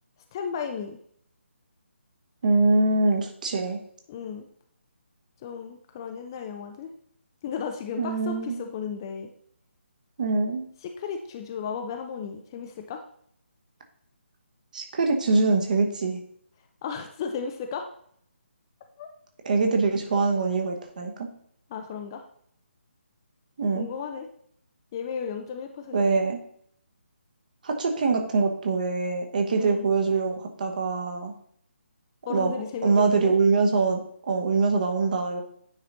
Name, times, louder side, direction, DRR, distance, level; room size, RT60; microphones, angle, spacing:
voice 1, 0.3-1.0 4.1-4.5 5.4-6.9 7.4-9.3 10.8-13.0 16.8-17.8 19.0-19.1 21.7-22.2 23.7-24.3 24.9-26.2 29.6-29.9 32.3-33.3, left 6 dB, 20° left, 5 dB, 0.5 m, -34 dB
voice 2, 2.4-3.8 8.0-8.6 10.2-10.7 14.7-16.2 19.4-21.3 23.6-23.9 25.9-26.4 27.6-31.3 32.3-32.5 32.8-34.0 34.3-35.4, right 3 dB, 40° right, 3 dB, 1.1 m, -24 dB
9.4 x 4.1 x 3.9 m, 0.65 s
figure-of-eight pair, 145°, 7 cm